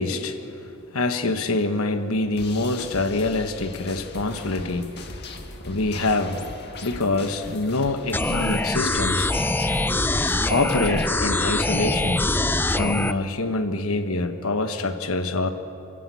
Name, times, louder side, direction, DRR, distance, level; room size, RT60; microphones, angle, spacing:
voice 1, 0.0-6.6 6.8-9.3 10.5-12.3 12.7-15.5, left 2 dB, 70° left, 8 dB, 1.3 m, -25 dB
sound 1, 2.4-11.1, left 3 dB, 50° left, 1.7 m, -39 dB
sound 2, 8.1-13.1, left 2 dB, 10° left, 0.4 m, -23 dB
29.0 x 11.0 x 8.4 m, 2.8 s
head